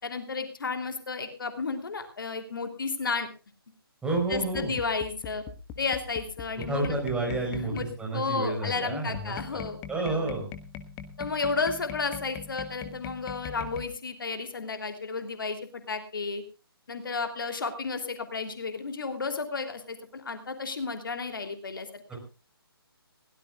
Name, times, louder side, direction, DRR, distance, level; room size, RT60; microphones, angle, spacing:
voice 1, 0.0-3.3 4.3-5.4 5.8-7.0 7.5-7.9 8.1-9.8 10.1-10.3 11.2-16.4 16.9-22.0, left 4 dB, 60° left, 7 dB, 2.9 m, -32 dB
voice 2, 4.0-4.7 6.7-9.6 9.9-10.5 11.2-11.3 22.1-22.2, right 2 dB, 5° right, 0 dB, 5.1 m, -30 dB
sound 1, 4.2-8.1 9.1-13.9, left 7 dB, 15° left, 1.2 m, -42 dB
21.5 x 17.0 x 2.3 m, 0.32 s
figure-of-eight pair, 145°, 13 cm